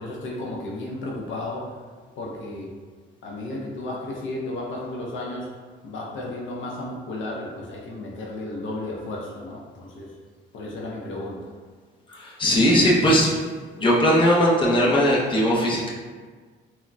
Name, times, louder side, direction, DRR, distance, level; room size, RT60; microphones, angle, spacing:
voice 1, 0.0-1.8 2.2-2.7 3.2-5.5 5.8-10.1 10.5-11.5, left 2 dB, 75° left, -3 dB, 0.6 m, -33 dB
voice 2, 12.1-13.3 13.8-15.9, equal, 25° left, -4 dB, 0.7 m, -19 dB
3.7 x 2.1 x 2.2 m, 1.5 s
cardioid pair, 90°, 20 cm